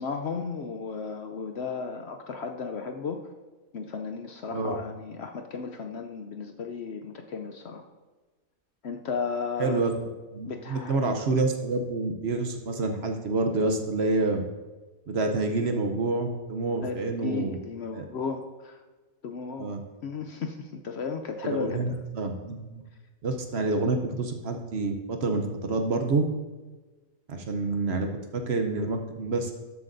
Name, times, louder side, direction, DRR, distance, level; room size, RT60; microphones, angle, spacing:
voice 1, 0.0-3.2 3.7-7.9 8.8-9.8 10.5-11.1 16.8-18.8 19.2-19.8 20.0-21.8, left 5 dB, 60° left, 5 dB, 0.8 m, -34 dB
voice 2, 9.6-9.9 10.3-14.4 15.1-17.6 17.9-18.0 19.6-19.8 21.4-22.8 23.2-26.3 27.3-29.5, right 3 dB, 55° right, 4 dB, 0.9 m, -28 dB
13.0 x 7.6 x 2.6 m, 1.3 s
omnidirectional pair, 1.5 m